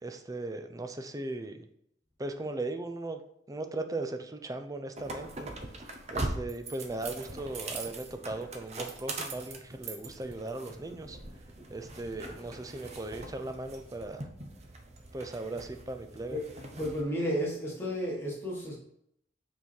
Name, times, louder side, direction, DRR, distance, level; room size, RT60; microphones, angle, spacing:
voice 1, 0.0-1.7 2.2-3.2 3.5-5.5 6.1-11.2 11.7-14.3 15.1-16.4, right 2 dB, 20° right, 7 dB, 0.5 m, -38 dB
sound 1, 5.0-17.0, right 2 dB, 35° right, 0.8 m, -41 dB
voice 2, 16.8-18.7, equal, 15° left, -6 dB, 1.6 m, -32 dB
5.8 x 4.7 x 4.4 m, 0.74 s
head